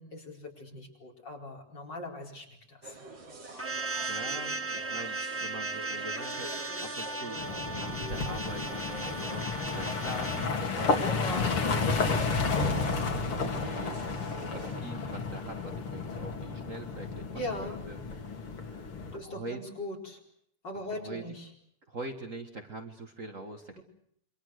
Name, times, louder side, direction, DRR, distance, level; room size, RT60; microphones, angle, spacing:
voice 1, 0.0-3.0 11.1-11.6 17.4-17.9 19.1-20.2 20.6-21.5 23.8-23.9, left 1 dB, 50° left, 1 dB, 5.2 m, -40 dB
sound 1, 2.8-14.8, right 2 dB, 55° right, 4.0 m, -46 dB
sound 2, 3.6-10.5, right 2 dB, 10° right, 1.0 m, -36 dB
voice 2, 3.8-11.4 11.6-12.2 12.5-14.0 14.4-18.0 18.6-18.8 19.2-19.6 21.0-21.2 21.9-23.8, right 2 dB, 40° right, 5 dB, 2.0 m, -43 dB
sound 3, 7.3-19.2, left 4 dB, 75° left, 3.4 m, -32 dB
27.5 x 24.5 x 6.6 m, 0.70 s
omnidirectional pair, 2.4 m